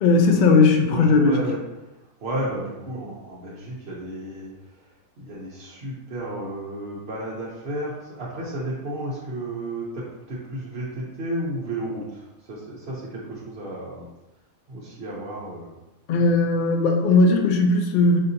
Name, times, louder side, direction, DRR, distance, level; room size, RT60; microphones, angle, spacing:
voice 1, 0.0-1.4 16.1-18.2, left 3 dB, 85° left, 3 dB, 0.4 m, -18 dB
voice 2, 0.8-1.6 2.2-4.8 5.2-14.1 14.7-15.7, right 1 dB, 55° right, -6 dB, 0.9 m, -33 dB
5.5 x 2.7 x 2.6 m, 1.0 s
omnidirectional pair, 1.5 m